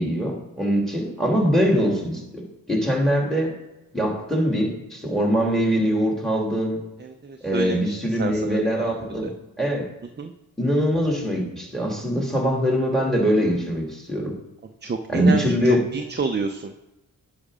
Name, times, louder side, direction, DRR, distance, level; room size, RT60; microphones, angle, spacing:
voice 1, 0.0-3.5 3.9-6.8 7.4-9.2 9.6-9.9 10.6-14.3 15.1-15.8, equal, ahead, 0 dB, 2.8 m, -22 dB
voice 2, 7.0-9.0 9.2-9.3 10.2-10.3 14.8-16.7, right 4 dB, 30° right, 5 dB, 0.7 m, -29 dB
9.9 x 5.1 x 5.0 m, 1.0 s
cardioid pair, 70°, 35 cm